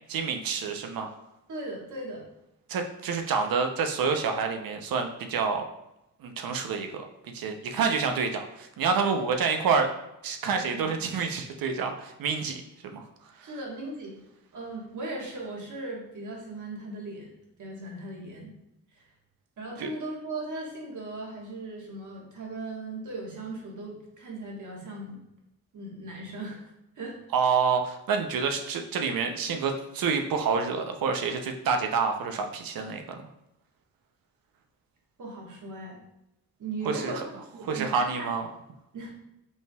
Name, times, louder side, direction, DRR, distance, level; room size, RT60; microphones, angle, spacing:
voice 1, 0.1-1.1 2.7-5.6 6.2-7.0 7.3-9.9 10.2-13.0 19.8-19.9 27.3-33.0 36.8-37.2 37.6-38.5, right 5 dB, 75° right, 5 dB, 0.6 m, -28 dB
voice 2, 1.5-2.3 10.4-10.9 13.4-14.2 14.5-17.3 17.6-18.5 18.9-19.0 19.6-25.2 25.7-26.7 27.0-27.2 35.2-36.0 36.6-38.3 38.9-39.1, right 2 dB, 55° right, -1 dB, 1.3 m, -38 dB
5.3 x 3.3 x 2.3 m, 0.87 s
cardioid pair, 75°, 35 cm